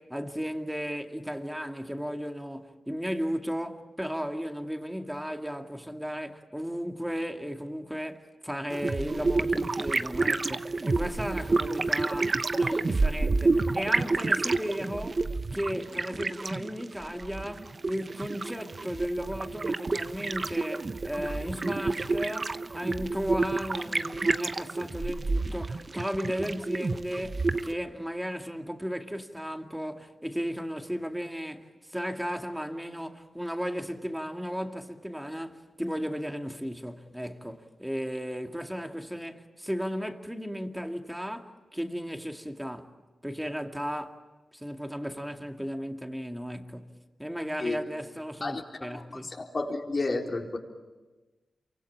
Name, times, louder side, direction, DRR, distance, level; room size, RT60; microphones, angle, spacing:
voice 1, 0.0-15.2 15.5-42.9 43.2-44.2 44.5-46.9 47.2-49.3, equal, 5° right, 2.3 m, -35 dB
sound 1, 8.7-27.7, right 3 dB, 40° right, 1.1 m, -29 dB
voice 2, 48.4-50.6, left 3 dB, 45° left, 4.2 m, -32 dB
28.0 x 24.5 x 8.8 m
cardioid pair, 60°, 0 cm